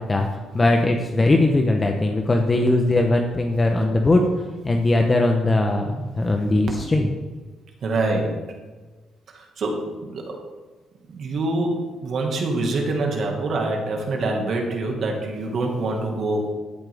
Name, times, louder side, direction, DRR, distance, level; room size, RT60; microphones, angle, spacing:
voice 1, 0.0-4.3 4.6-7.1, left 2 dB, 25° left, 3 dB, 0.9 m, -20 dB
voice 2, 7.8-8.4 9.3-10.4 11.1-16.5, right 2 dB, 60° right, 1 dB, 1.9 m, -25 dB
13.5 x 7.5 x 3.6 m, 1.3 s
cardioid pair, 90°, 0 cm